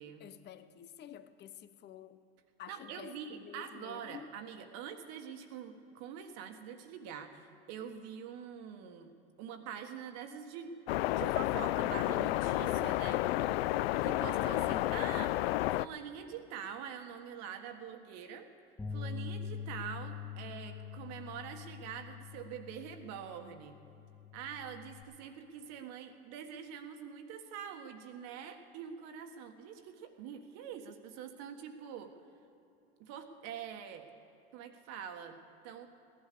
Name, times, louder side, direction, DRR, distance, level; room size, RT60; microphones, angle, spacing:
voice 1, 0.2-2.2 2.6-4.3 13.2-13.7, left 10 dB, 30° left, 13 dB, 0.8 m, -50 dB
voice 2, 2.7-9.1 9.4-10.7 11.1-13.2 14.0-15.3 15.7-18.5 18.9-23.8 24.3-32.1 33.0-34.1 34.5-35.4 35.6-35.9, right 8 dB, 55° right, 6 dB, 1.5 m, -45 dB
sound 1, 10.9-15.9, left 16 dB, 70° left, 0.4 m, -31 dB
Bass guitar, 18.8-25.0, left 6 dB, 15° left, 3.6 m, -44 dB
16.5 x 11.5 x 6.8 m, 2.8 s
hypercardioid pair, 105°, 32 cm